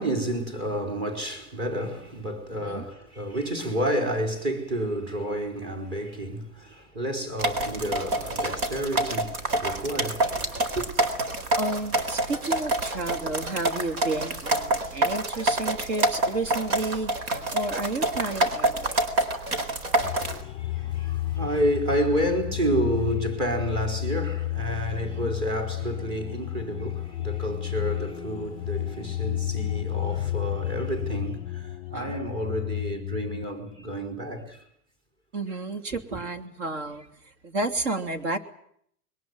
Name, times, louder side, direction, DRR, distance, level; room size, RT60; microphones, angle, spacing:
voice 1, 0.0-10.9 20.3-34.7, right 1 dB, 30° right, 4.5 m, -30 dB
voice 2, 2.5-2.8 11.6-17.1 17.5-18.9 25.0-25.3 31.9-32.1 35.3-38.4, right 2 dB, 50° right, 3.0 m, -31 dB
sound 1, 7.4-20.4, right 2 dB, 65° right, 4.4 m, -27 dB
sound 2, 20.0-33.4, left 14 dB, 30° left, 0.9 m, -32 dB
22.0 x 20.0 x 9.6 m
supercardioid pair, 165°, 45 cm